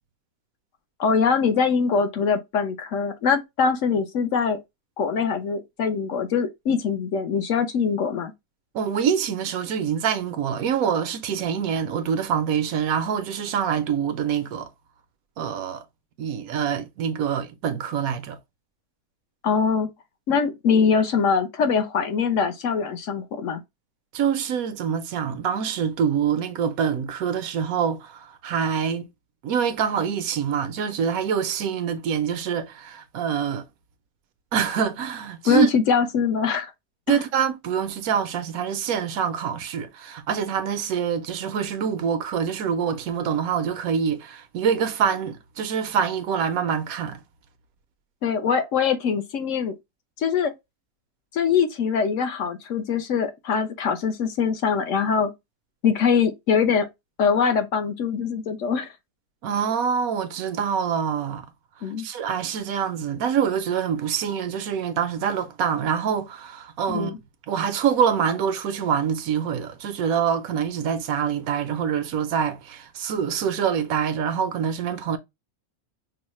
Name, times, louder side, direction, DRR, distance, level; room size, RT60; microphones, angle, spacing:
voice 1, 1.0-4.6 5.0-8.3 19.4-19.9 20.3-23.6 35.4-36.7 37.1-37.2 48.2-49.7 50.2-50.5 51.3-55.3 55.8-56.9 57.2-58.9 61.8-62.1 66.9-67.2, left 6 dB, 65° left, 1.0 m, -23 dB
voice 2, 8.7-14.7 15.4-15.8 16.2-18.4 24.1-29.1 29.4-33.7 34.5-35.7 37.1-47.2 59.4-61.5 62.0-67.1 67.5-75.2, right 7 dB, 80° right, 1.1 m, -25 dB
5.4 x 2.1 x 3.0 m
omnidirectional pair, 1.5 m